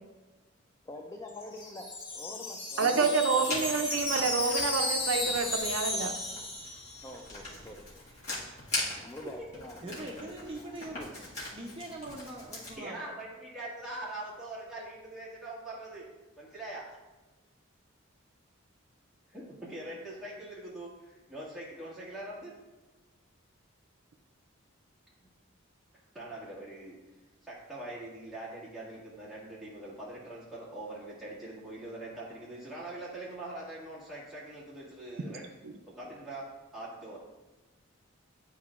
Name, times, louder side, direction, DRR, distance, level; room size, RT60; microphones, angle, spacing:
voice 1, 0.9-3.7 7.0-8.0 8.9-10.0 10.2-10.3 10.6-11.1, left 1 dB, 15° left, 1 dB, 0.4 m, -45 dB
Wind chime, 1.3-7.3, left 2 dB, 50° left, 1.5 m, -34 dB
voice 2, 2.8-6.1, right 4 dB, 65° right, 6 dB, 0.5 m, -28 dB
Writing, 3.4-12.7, left 1 dB, 35° left, 1.8 m, -41 dB
voice 3, 9.8-13.0, right 1 dB, 25° right, -2 dB, 0.7 m, -42 dB
voice 4, 12.8-16.1 16.4-16.9 19.3-22.5 26.1-27.0 27.4-35.5 35.9-36.5 36.7-37.2, right 1 dB, ahead, -8 dB, 1.9 m, -42 dB
10.0 x 4.6 x 2.4 m, 1.1 s
head